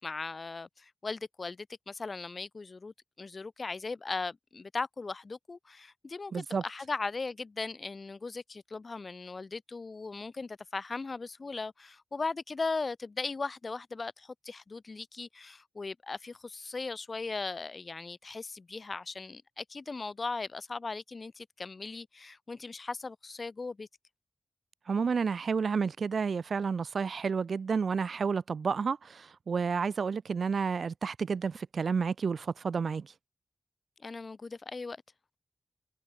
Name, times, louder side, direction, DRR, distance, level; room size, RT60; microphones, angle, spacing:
voice 1, 0.0-23.9 34.0-35.0, left 3 dB, 45° left, 7.8 m, -38 dB
voice 2, 6.3-6.6 24.9-33.1, right 5 dB, 75° right, 2.3 m, -30 dB
wide cardioid pair, 90°, 0 cm